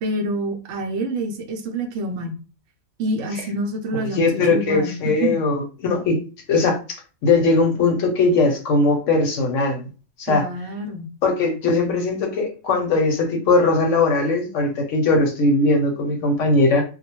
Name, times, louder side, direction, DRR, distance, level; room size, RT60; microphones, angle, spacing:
voice 1, 0.0-2.4 3.0-5.3 10.3-11.1, right 1 dB, 70° right, 3 dB, 0.9 m, -27 dB
voice 2, 4.1-6.2 6.5-9.9 10.2-10.4 11.2-16.8, left 3 dB, 70° left, 3 dB, 0.9 m, -19 dB
2.3 x 2.1 x 2.8 m, 0.34 s
omnidirectional pair, 1.4 m